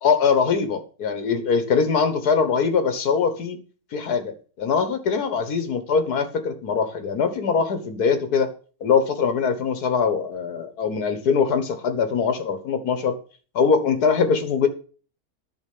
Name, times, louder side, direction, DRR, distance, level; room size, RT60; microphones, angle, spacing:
voice 1, 0.0-3.6 3.9-8.5 8.8-13.1 13.6-14.7, left 5 dB, 80° left, 9 dB, 1.8 m, -22 dB
11.0 x 5.1 x 8.4 m, 0.39 s
omnidirectional pair, 1.6 m